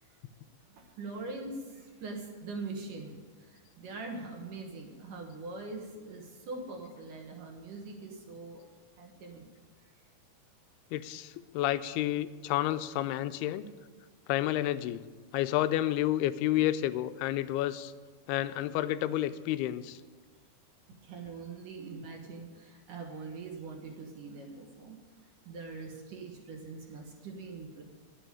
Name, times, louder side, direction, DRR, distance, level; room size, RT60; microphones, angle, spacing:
voice 1, 0.7-8.6 9.0-9.4 9.8-9.9 21.0-25.0 25.5-27.8, right 3 dB, 65° right, 2 dB, 2.6 m, -43 dB
voice 2, 10.9-13.7 14.3-15.0 15.3-17.9 18.3-20.0, left 13 dB, 85° left, 12 dB, 2.6 m, -30 dB
11.5 x 8.3 x 9.2 m, 1.4 s
omnidirectional pair, 4.5 m